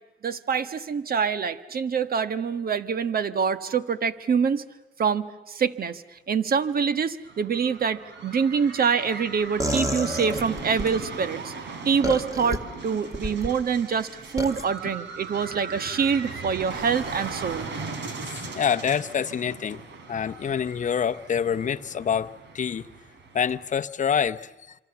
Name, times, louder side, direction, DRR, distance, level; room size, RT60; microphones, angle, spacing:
voice 1, 0.2-4.6 5.0-11.5 11.8-14.1 14.3-17.7, right 6 dB, 50° right, 1.4 m, -25 dB
sound 1, 7.3-23.9, right 4 dB, 65° right, 3.3 m, -38 dB
sound 2, 9.6-10.9 12.0-12.6 13.1-13.5 14.4-14.6, right 1 dB, 15° right, 2.4 m, -28 dB
voice 2, 18.3-19.8 20.1-22.9 23.3-24.8, left 7 dB, 40° left, 0.8 m, -26 dB
27.0 x 25.5 x 7.1 m
cardioid pair, 90°, 20 cm